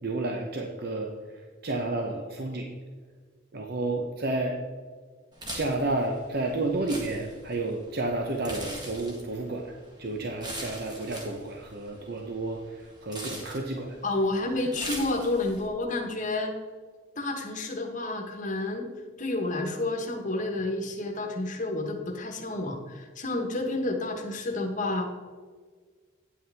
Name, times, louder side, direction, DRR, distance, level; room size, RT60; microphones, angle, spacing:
voice 1, 0.0-2.7 3.5-4.6 5.5-14.0, right 2 dB, 50° right, 1 dB, 0.8 m, -31 dB
sound 1, 5.3-15.7, right 1 dB, 20° right, 1.5 m, -42 dB
voice 2, 14.0-16.5 17.1-18.9 19.2-25.0, left 2 dB, 35° left, 3 dB, 1.2 m, -30 dB
9.4 x 8.3 x 3.5 m, 1.5 s
head